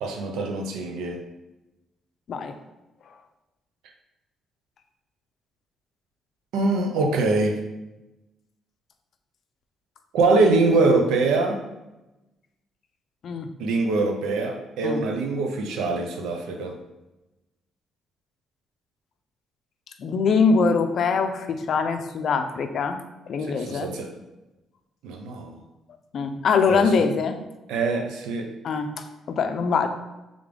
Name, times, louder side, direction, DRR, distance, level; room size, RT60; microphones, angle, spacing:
voice 1, 0.0-1.2 6.5-7.6 10.1-11.6 13.6-16.8 23.5-24.1 25.0-25.6 26.7-27.0 27.7-28.5, right 3 dB, 90° right, 3 dB, 0.6 m, -23 dB
voice 2, 20.0-23.0 23.3-23.9 26.1-27.4 28.6-29.9, left 5 dB, 60° left, 7 dB, 0.4 m, -23 dB
3.7 x 3.5 x 3.4 m, 1.0 s
cardioid pair, 90°, 0 cm